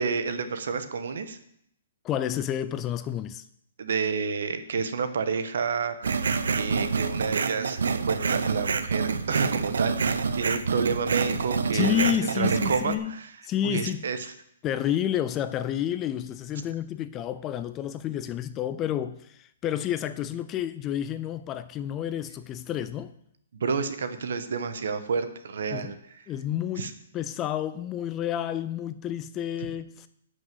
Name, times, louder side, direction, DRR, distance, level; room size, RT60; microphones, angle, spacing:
voice 1, 0.0-1.4 3.8-6.2 6.6-12.1 12.3-13.3 13.6-14.2 23.5-26.2 26.8-26.9, right 5 dB, 60° right, 1.2 m, -30 dB
voice 2, 2.0-3.4 11.7-13.2 13.4-14.0 14.6-23.1 25.7-25.9 26.3-30.1, left 10 dB, 15° left, 0.3 m, -30 dB
sound 1, 6.0-13.0, right 5 dB, 85° right, 0.8 m, -27 dB
11.0 x 6.2 x 7.8 m
hypercardioid pair, 180°, 0 cm